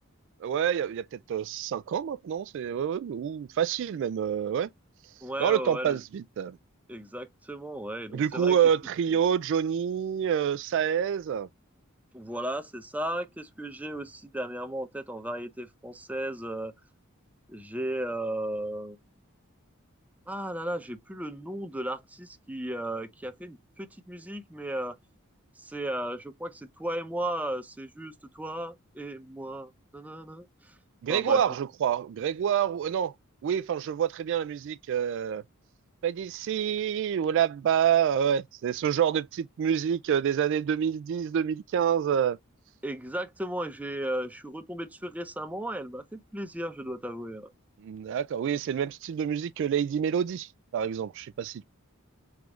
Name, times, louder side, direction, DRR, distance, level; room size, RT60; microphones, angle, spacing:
voice 1, 0.4-4.7 5.4-6.6 8.1-11.5 31.0-33.1 33.4-35.4 36.0-42.4 47.8-51.6, right 8 dB, 60° right, 0.3 m, -27 dB
voice 2, 5.2-6.0 6.9-8.6 12.1-16.7 17.5-19.0 20.3-25.0 25.6-30.7 31.1-31.4 42.8-47.5, right 1 dB, 5° right, 0.5 m, -35 dB
3.6 x 3.5 x 3.0 m
head